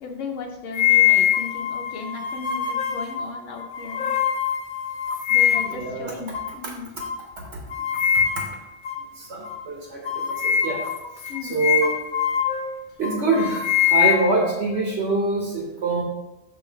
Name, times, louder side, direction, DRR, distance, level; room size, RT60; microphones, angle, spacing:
voice 1, 0.0-4.1 5.3-6.9 11.3-11.6, left 4 dB, 75° left, 1 dB, 1.0 m, -36 dB
sound 1, 0.7-5.9 6.3-6.5 7.0-7.2 7.7-8.6 8.8-9.0 9.4-9.6 10.0-12.7 13.0-14.9, left 10 dB, 60° left, 0.5 m, -23 dB
voice 2, 5.7-6.1 7.5-7.6 8.1-8.2 9.2-10.8 11.4-12.0 13.0-16.0, right 3 dB, 60° right, -1 dB, 1.2 m, -25 dB
6.8 x 3.2 x 4.5 m, 0.97 s
omnidirectional pair, 1.3 m